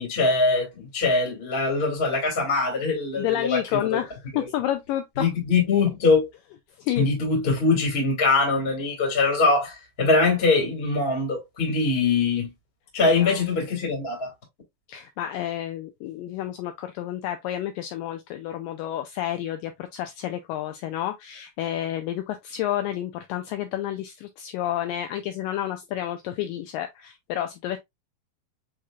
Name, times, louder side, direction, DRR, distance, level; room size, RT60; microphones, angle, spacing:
voice 1, 0.0-4.0 4.3-4.5 5.2-6.3 7.0-12.5 12.9-14.3, left 3 dB, 25° left, 1.5 m, -23 dB
voice 2, 3.2-5.3 6.8-7.1 13.1-13.4 14.9-27.8, left 12 dB, 80° left, 2.0 m, -30 dB
6.5 x 2.9 x 2.3 m
omnidirectional pair, 4.2 m